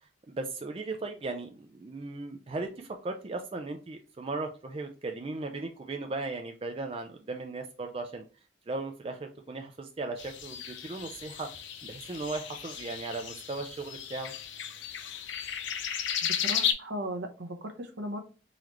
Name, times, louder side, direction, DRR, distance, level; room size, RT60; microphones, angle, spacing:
voice 1, 0.0-8.2 8.7-11.5 11.8-14.3, right 3 dB, 30° right, 5 dB, 0.4 m, -37 dB
sound 1, 10.2-16.7, left 8 dB, 80° left, 0.6 m, -34 dB
voice 2, 16.2-18.2, right 1 dB, 70° right, 5 dB, 0.9 m, -37 dB
3.9 x 3.1 x 3.0 m, 0.34 s
head